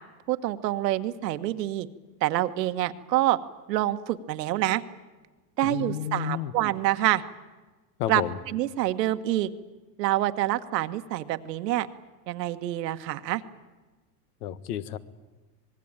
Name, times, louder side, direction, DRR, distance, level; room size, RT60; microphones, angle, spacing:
voice 1, 0.3-1.9 2.2-3.4 3.7-4.8 5.6-7.2 8.1-8.2 8.5-9.5 10.0-11.9 12.3-13.4, right 15 dB, 85° right, 10 dB, 1.6 m, -26 dB
voice 2, 5.6-6.5 8.0-8.4 14.4-15.0, left 11 dB, 70° left, 15 dB, 1.6 m, -31 dB
26.5 x 20.5 x 8.9 m, 1.2 s
supercardioid pair, 150°, 48 cm